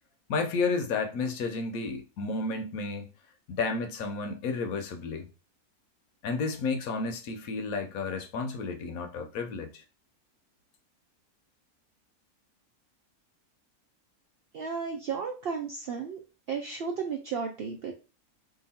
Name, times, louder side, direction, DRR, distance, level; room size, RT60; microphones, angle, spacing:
voice 1, 0.3-3.1 3.5-5.3 6.2-9.8, left 4 dB, 75° left, 1.1 m, -32 dB
voice 2, 14.5-16.2 16.5-17.9, right 5 dB, 75° right, 0.5 m, -33 dB
2.9 x 2.6 x 4.0 m
omnidirectional pair, 1.6 m